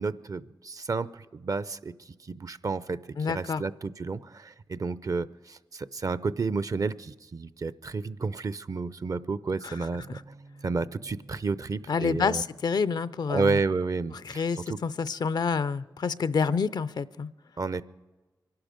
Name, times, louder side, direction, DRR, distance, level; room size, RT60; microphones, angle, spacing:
voice 1, 0.0-10.1 10.6-12.4 13.3-14.8 17.6-17.8, right 4 dB, 50° right, 17 dB, 0.5 m, -31 dB
voice 2, 3.2-3.6 9.6-9.7 11.9-13.6 14.3-17.3, left 5 dB, 65° left, 16 dB, 0.5 m, -28 dB
Bass guitar, 10.0-16.3, right 2 dB, 85° right, 3.7 m, -55 dB
23.5 x 11.5 x 5.1 m, 1.2 s
cardioid pair, 50°, 7 cm